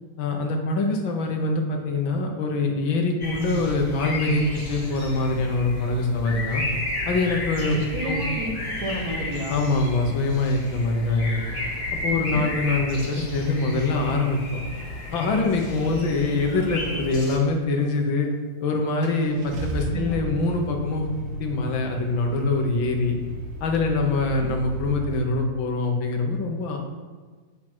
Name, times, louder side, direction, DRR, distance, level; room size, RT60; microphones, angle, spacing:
voice 1, 0.2-6.6 7.1-8.2 9.5-11.4 11.9-14.6 15.1-18.3 18.6-21.0 21.4-23.1 23.6-26.8, left 3 dB, 80° left, 2 dB, 1.9 m, -24 dB
sound 1, 3.2-17.4, left 2 dB, 45° left, 2.5 m, -32 dB
voice 2, 7.7-9.7 12.1-12.5 15.9-16.1 19.9-20.2 24.4-24.6, right 1 dB, 55° right, 0 dB, 1.8 m, -32 dB
Car / Engine starting, 18.3-18.4 19.0-25.2, right 2 dB, 80° right, 1.9 m, -34 dB
8.5 x 7.4 x 4.4 m, 1.4 s
omnidirectional pair, 2.1 m